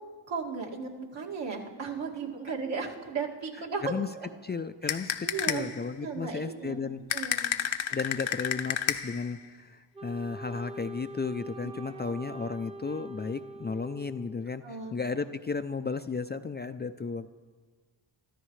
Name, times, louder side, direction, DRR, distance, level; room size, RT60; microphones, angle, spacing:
voice 1, 0.3-3.8 4.1-4.3 5.2-5.7 6.0-6.8 7.1-7.5 11.6-11.7 14.6-15.0, right 5 dB, 65° right, -2 dB, 2.5 m, -35 dB
voice 2, 4.4-7.0 7.9-17.3, left 4 dB, 25° left, 9 dB, 0.4 m, -34 dB
sound 1, 4.9-5.8 7.1-9.3, left 10 dB, 75° left, 0.9 m, -31 dB
Wind instrument woodwind instrument, 9.9-14.6, right 2 dB, 10° right, 0.8 m, -44 dB
24.0 x 13.5 x 3.2 m, 1.4 s
cardioid pair, 80°, 47 cm